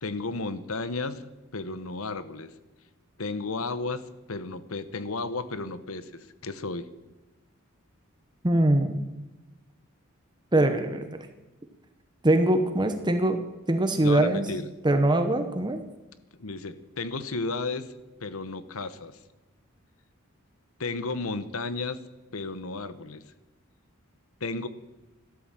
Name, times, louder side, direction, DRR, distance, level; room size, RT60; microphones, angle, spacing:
voice 1, 0.0-2.5 3.2-6.9 14.0-14.7 16.4-17.9 18.2-19.2 20.8-22.0 22.3-23.2 24.4-24.7, left 3 dB, 90° left, 14 dB, 1.1 m, -33 dB
voice 2, 8.4-9.0 10.5-11.3 12.2-13.4 13.7-14.5 14.8-15.8, right 1 dB, 20° right, 7 dB, 0.9 m, -23 dB
14.0 x 12.5 x 7.6 m, 1.1 s
head